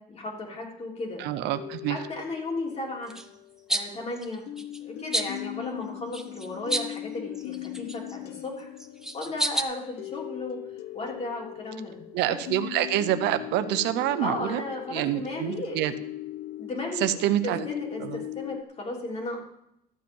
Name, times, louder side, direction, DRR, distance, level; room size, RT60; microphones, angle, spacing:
voice 1, 0.1-1.2 1.9-3.1 3.7-4.4 4.8-8.7 9.1-10.6 10.9-11.9 12.3-12.4 14.2-15.8 16.6-17.0 17.4-19.4, left 2 dB, 40° left, -1 dB, 3.4 m, -35 dB
sound 1, 1.2-4.0 4.5-18.6, left 15 dB, 75° left, 0.5 m, -40 dB
voice 2, 1.2-2.0 12.1-14.6 14.9-15.9 17.0-17.7 18.0-18.2, right 13 dB, 85° right, 11 dB, 0.8 m, -27 dB
sound 2, 3.1-3.3 3.7-3.9 4.2-4.8 5.1-5.4 6.1-7.0 7.3-8.2 8.8-9.6, right 1 dB, 5° right, 0.9 m, -30 dB
13.5 x 7.8 x 5.4 m, 0.80 s
cardioid pair, 110°, 17 cm